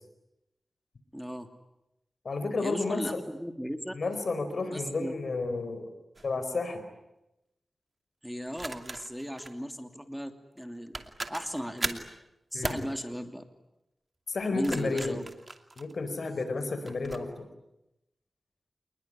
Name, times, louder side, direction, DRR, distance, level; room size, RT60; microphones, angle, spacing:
voice 1, 1.1-1.5 2.6-3.9 4.7-5.1 8.2-11.0 11.3-12.0 12.5-13.4 14.5-15.2, equal, ahead, 7 dB, 2.8 m, -36 dB
voice 2, 2.2-3.2 3.9-5.9 6.2-6.8 12.5-12.9 14.3-15.2 15.8-17.5, left 3 dB, 70° left, 9 dB, 4.6 m, -31 dB
sound 1, 6.2-6.4 8.5-9.6 10.6-10.7 10.9-12.1 12.6-12.9 14.4-16.3 16.9-17.2, right 2 dB, 40° right, 2.6 m, -37 dB
27.5 x 21.0 x 10.0 m, 0.91 s
cardioid pair, 50°, 0 cm